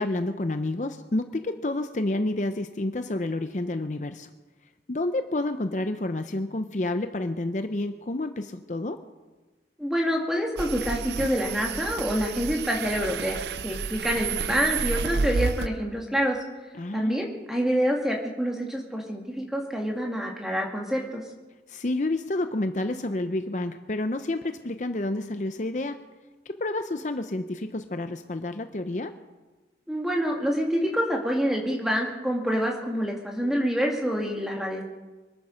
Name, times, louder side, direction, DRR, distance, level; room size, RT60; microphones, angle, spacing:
voice 1, 0.0-4.3 4.9-9.0 16.7-17.3 21.7-26.0 26.5-29.1, left 2 dB, 45° left, 8 dB, 0.6 m, -29 dB
voice 2, 9.8-16.4 16.9-21.2 29.9-34.8, equal, 5° right, 0 dB, 2.3 m, -27 dB
sound 1, 10.6-15.7, right 5 dB, 75° right, 0.6 m, -30 dB
24.5 x 9.3 x 6.5 m, 1.2 s
head